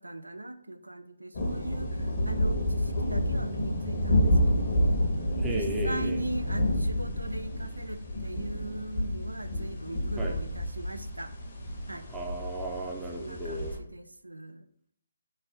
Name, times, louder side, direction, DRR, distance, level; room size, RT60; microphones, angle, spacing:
voice 1, 0.0-5.1 5.5-11.3 11.9-12.1 13.1-14.7, right 1 dB, 90° right, 10 dB, 0.3 m, -39 dB
sound 1, 1.3-13.8, equal, 45° left, 0.9 m, -29 dB
voice 2, 5.4-6.2 10.2-10.3 12.1-13.8, right 1 dB, 10° right, -1 dB, 0.5 m, -35 dB
3.2 x 2.1 x 4.1 m, 0.67 s
figure-of-eight pair, 145°, 0 cm